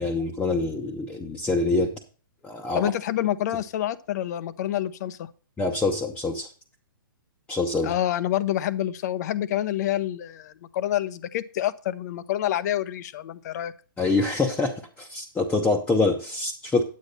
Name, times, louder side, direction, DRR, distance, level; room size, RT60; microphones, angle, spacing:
voice 1, 0.0-1.9 2.4-2.9 5.6-6.5 7.5-7.9 14.0-16.8, left 3 dB, 10° left, 0 dB, 0.9 m, -25 dB
voice 2, 2.7-5.3 7.8-13.7, left 12 dB, 50° left, 16 dB, 0.7 m, -27 dB
9.5 x 8.4 x 4.1 m, 0.39 s
hypercardioid pair, 135°, 12 cm